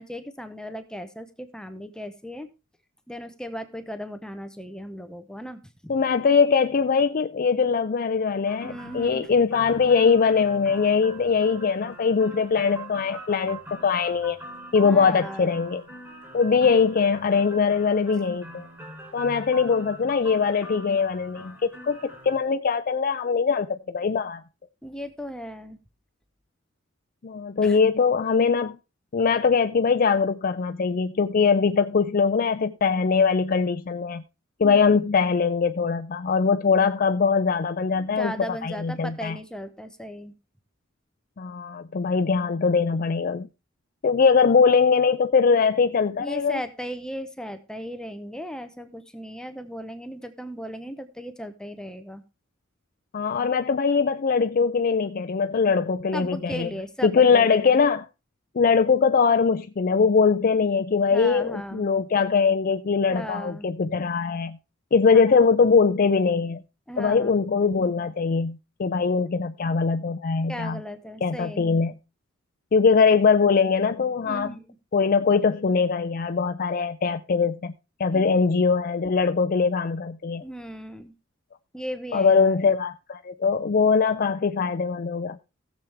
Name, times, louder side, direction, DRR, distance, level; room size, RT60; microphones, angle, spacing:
voice 1, 0.0-2.5 3.1-6.0 8.6-9.3 14.8-15.6 24.8-25.8 27.6-27.8 34.6-35.1 37.9-40.3 44.2-44.3 46.2-52.2 56.1-57.7 61.1-61.9 63.1-63.7 65.3-65.4 66.9-67.3 70.5-71.7 74.2-74.7 78.1-78.3 80.4-81.1 81.7-82.6, equal, 5° left, 0.8 m, -37 dB
voice 2, 5.9-14.4 14.7-15.8 16.3-18.6 19.1-22.0 22.2-24.4 27.2-28.8 29.1-34.2 34.6-38.3 38.6-39.4 41.4-43.5 44.0-46.6 53.1-56.7 57.0-58.1 58.5-64.6 64.9-66.6 67.0-70.8 71.2-71.9 72.7-74.6 74.9-77.7 78.0-80.4 82.1-85.4, left 5 dB, 45° left, 0.5 m, -22 dB
sound 1, 8.4-22.4, right 1 dB, 10° right, 3.7 m, -43 dB
16.5 x 7.2 x 3.4 m
head